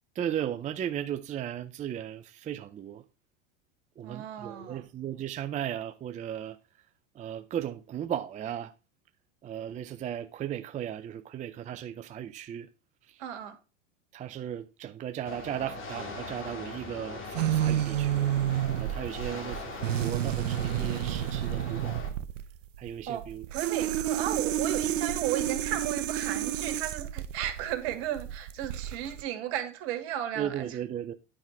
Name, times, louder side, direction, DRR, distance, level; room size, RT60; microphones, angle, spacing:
voice 1, 0.1-3.0 4.0-6.6 7.1-8.7 9.4-12.7 13.1-13.2 14.1-18.2 18.8-22.0 22.8-23.4 30.4-31.1, right 10 dB, 20° right, 0.5 m, -36 dB
voice 2, 4.0-4.8 13.2-13.6 19.2-19.5 23.1-23.2 23.5-30.8, right 11 dB, 60° right, 2.3 m, -34 dB
sound 1, 15.2-22.1, left 3 dB, 35° left, 2.9 m, -41 dB
sound 2, 17.3-29.2, right 11 dB, 90° right, 0.7 m, -30 dB
10.0 x 5.6 x 4.6 m
hypercardioid pair, 110°, 37 cm